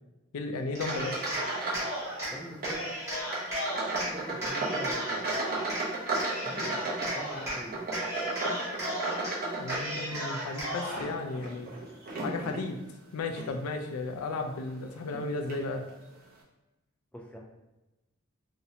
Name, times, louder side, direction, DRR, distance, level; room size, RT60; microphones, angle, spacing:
voice 1, 0.3-1.2 9.6-11.7 12.2-12.8 13.1-15.8, left 3 dB, 85° left, 5 dB, 0.4 m, -34 dB
Cheering, 0.7-2.3 2.6-4.1 4.4-5.8 6.1-7.6 7.9-9.3 9.6-11.1, right 1 dB, 15° right, 0.9 m, -35 dB
sound 1, 0.8-2.0 2.2-2.8 3.2-10.3 10.8-12.7 13.3-13.5 14.1-14.2 15.1-15.2 15.5-15.6, right 2 dB, 45° right, 0.6 m, -34 dB
voice 2, 2.3-3.0 4.1-5.5 6.4-6.7 7.0-7.8 17.1-17.4, equal, 5° left, -1 dB, 0.3 m, -43 dB
2.5 x 2.1 x 2.7 m, 1.0 s
head